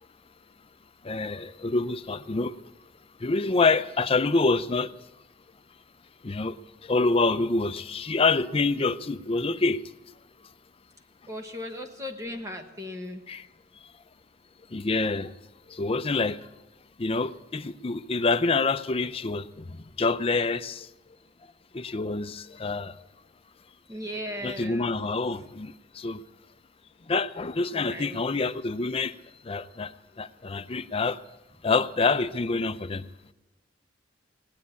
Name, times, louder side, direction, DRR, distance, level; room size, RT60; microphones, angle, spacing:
voice 1, 1.0-2.5 3.2-4.9 6.2-6.6 6.8-9.8 13.3-13.4 14.7-15.3 15.7-16.4 17.0-20.9 21.7-22.9 24.4-26.2 27.1-29.1 29.5-31.2 31.6-33.0, left 3 dB, 30° left, 0.5 m, -26 dB
voice 2, 11.3-13.2 23.9-24.9 27.7-28.2, left 1 dB, 15° right, 1.0 m, -37 dB
18.0 x 9.4 x 8.6 m
head